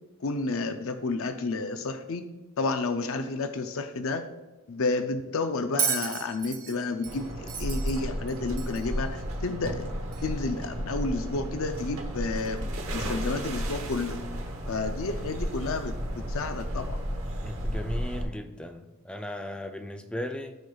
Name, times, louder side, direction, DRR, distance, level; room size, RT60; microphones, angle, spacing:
voice 1, 0.2-2.3 2.6-4.2 4.7-9.9 10.2-14.2 14.7-17.0, left 3 dB, 70° left, 8 dB, 0.5 m, -31 dB
Bell, 5.8-9.0 10.1-10.2, right 7 dB, 35° right, 0.8 m, -33 dB
sound 1, 7.1-18.2, equal, 65° right, 1.1 m, -33 dB
voice 2, 17.3-20.6, left 1 dB, 5° left, 6 dB, 0.4 m, -37 dB
13.0 x 4.9 x 2.3 m, 1.1 s
head